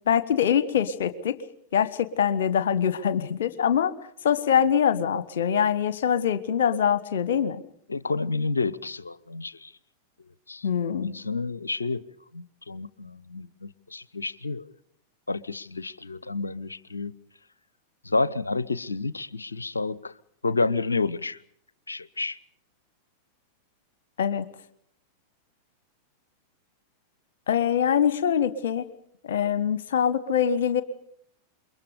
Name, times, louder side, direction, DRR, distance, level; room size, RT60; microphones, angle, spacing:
voice 1, 0.1-1.4 1.7-3.9 4.2-7.6 10.6-11.1 24.2-24.5 27.5-28.9 29.2-30.8, left 8 dB, 60° left, 1.4 m, -24 dB
voice 2, 7.9-9.7 10.5-10.7 11.0-12.0 12.3-14.7 15.3-17.2 18.0-20.1 20.4-21.4 21.9-22.4, left 3 dB, 80° left, 0.8 m, -30 dB
28.0 x 23.0 x 5.1 m
figure-of-eight pair, 90°, 0 cm